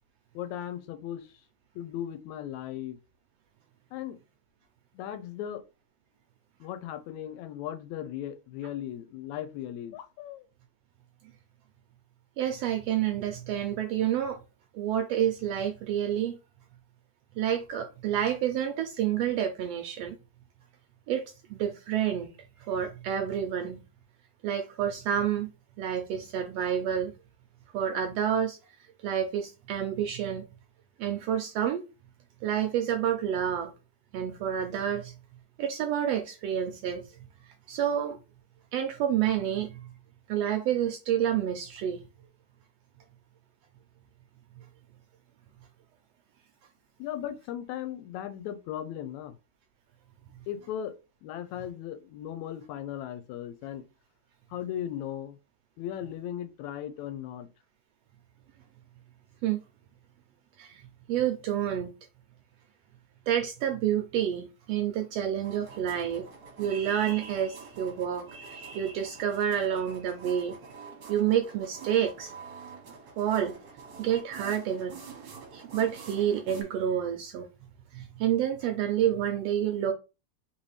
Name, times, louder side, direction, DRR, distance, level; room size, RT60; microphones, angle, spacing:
voice 1, 0.4-1.3 1.8-3.0 3.9-4.2 4.9-5.6 6.6-10.5 47.0-49.4 50.5-51.0 51.2-53.8 54.5-55.4 55.8-57.5, left 11 dB, 80° left, 1.9 m, -37 dB
voice 2, 12.4-14.4 14.7-16.4 17.4-20.2 21.1-21.2 21.5-22.3 22.6-23.8 24.4-25.5 25.8-27.1 27.7-28.6 29.0-30.4 31.0-31.8 32.4-33.7 34.1-35.1 35.6-37.1 37.7-38.2 38.7-39.8 40.3-42.0 59.4-59.6 60.6-60.8 61.1-61.9 63.3-66.3 66.6-70.6 71.1-72.3 73.2-73.6 74.0-75.0 75.5-77.5 77.9-79.9, right 10 dB, 80° right, 1.5 m, -29 dB
sound 1, 65.4-76.6, right 5 dB, 55° right, 1.4 m, -47 dB
4.0 x 3.7 x 3.1 m
omnidirectional pair, 3.4 m